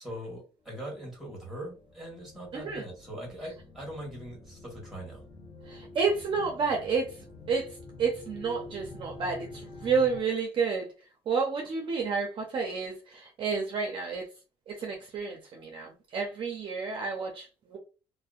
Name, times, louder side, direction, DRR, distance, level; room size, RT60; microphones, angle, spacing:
voice 1, 0.0-5.2, right 1 dB, ahead, 1.2 m, -41 dB
sound 1, 0.7-10.2, left 2 dB, 40° left, 0.7 m, -47 dB
voice 2, 2.5-2.9 5.7-7.2 7.5-10.9 11.3-14.3 14.7-17.8, right 5 dB, 45° right, 0.5 m, -30 dB
2.6 x 2.0 x 2.4 m
cardioid pair, 130°, 12 cm